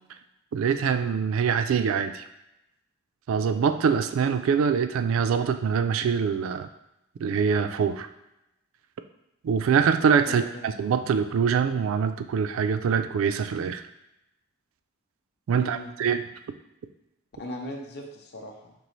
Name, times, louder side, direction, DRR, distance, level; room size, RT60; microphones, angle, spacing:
voice 1, 0.5-2.2 3.3-6.7 7.2-8.1 9.4-13.8 15.5-16.2, right 6 dB, 70° right, 9 dB, 0.3 m, -24 dB
voice 2, 10.2-10.7 15.5-15.9 17.4-18.7, left 1 dB, 50° left, 2 dB, 0.6 m, -38 dB
5.3 x 2.8 x 3.1 m, 0.89 s
head